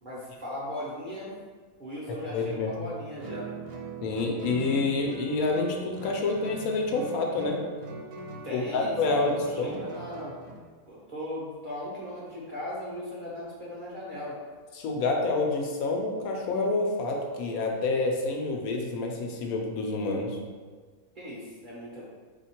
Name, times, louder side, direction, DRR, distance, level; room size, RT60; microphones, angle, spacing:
voice 1, 0.0-1.3 1.8-3.5 8.4-10.4 10.9-14.4 21.2-22.1, left 1 dB, 40° right, -6 dB, 0.8 m, -37 dB
voice 2, 2.3-2.7 4.0-7.6 8.5-9.3 9.6-9.8 14.7-20.4, left 3 dB, 75° left, 1 dB, 1.0 m, -28 dB
Guitar, 3.2-10.7, right 3 dB, 75° right, 1.0 m, -41 dB
3.6 x 2.8 x 4.3 m, 1.5 s
omnidirectional pair, 1.6 m